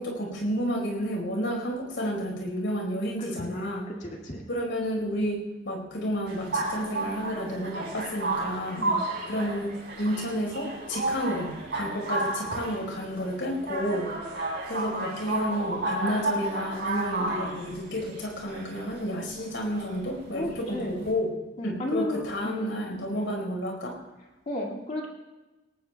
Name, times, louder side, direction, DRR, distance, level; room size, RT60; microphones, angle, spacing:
voice 1, 0.0-3.9 4.5-8.8 9.3-21.3 21.6-23.9, equal, 70° left, 1 dB, 4.7 m, -31 dB
voice 2, 3.2-4.4 8.8-9.0 20.3-20.9 21.6-22.7 23.1-23.3 24.5-25.1, left 1 dB, 40° left, -1 dB, 2.2 m, -33 dB
sound 1, 6.3-21.1, right 2 dB, 60° right, 5.0 m, -32 dB
19.5 x 18.5 x 2.3 m, 1.1 s
head